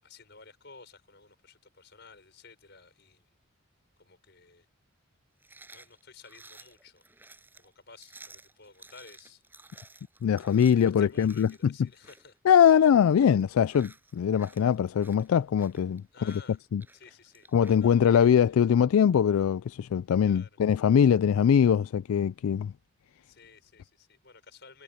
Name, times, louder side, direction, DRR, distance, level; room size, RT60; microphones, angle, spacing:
voice 1, 0.0-3.3 4.0-4.7 5.7-7.0 7.5-9.4 10.4-12.4 12.7-12.9 16.1-16.6 16.9-17.5 17.8-18.6 20.2-20.6 23.2-24.8, left 4 dB, 50° left, 6.6 m, -53 dB
sound 1, 5.4-17.9, right 3 dB, 10° right, 5.9 m, -55 dB
voice 2, 10.2-11.5 12.5-16.0 16.7-16.8 17.5-22.7, left 8 dB, 80° left, 0.3 m, -22 dB
head